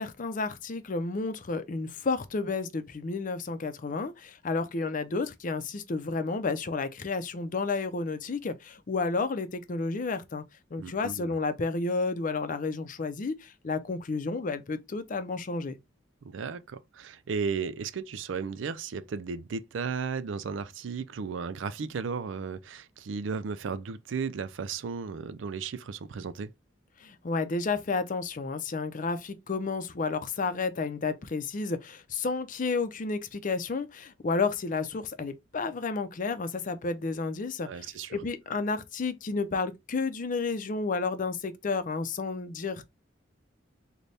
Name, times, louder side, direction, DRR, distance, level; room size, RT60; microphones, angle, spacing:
voice 1, 0.0-10.4 10.7-15.8 27.0-42.8, left 4 dB, 45° left, 0.5 m, -31 dB
voice 2, 10.8-11.4 16.2-26.5 37.6-38.2, right 5 dB, 90° right, 0.4 m, -35 dB
4.0 x 2.2 x 3.3 m
head